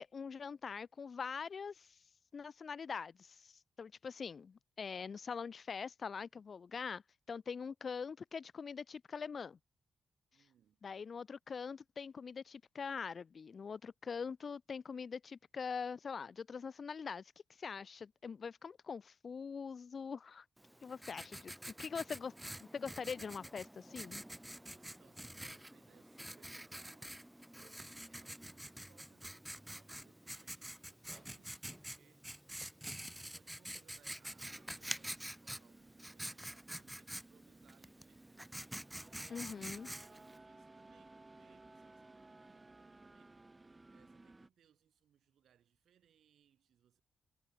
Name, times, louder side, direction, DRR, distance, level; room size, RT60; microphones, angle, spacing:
voice 1, 0.0-2.0 2.3-7.0 7.3-9.6 10.8-17.2 17.6-20.4 20.8-22.3 22.7-24.2 39.3-39.9, left 6 dB, 50° left, 0.6 m, -43 dB
voice 2, 10.3-10.8 24.6-32.5 32.9-43.4 43.9-47.0, right 9 dB, 85° right, 4.5 m, -71 dB
Writing, 20.6-40.4, right 1 dB, 5° right, 0.8 m, -48 dB
sound 1, 34.2-44.5, right 2 dB, 20° right, 1.2 m, -59 dB
cardioid pair, 95°, 0 cm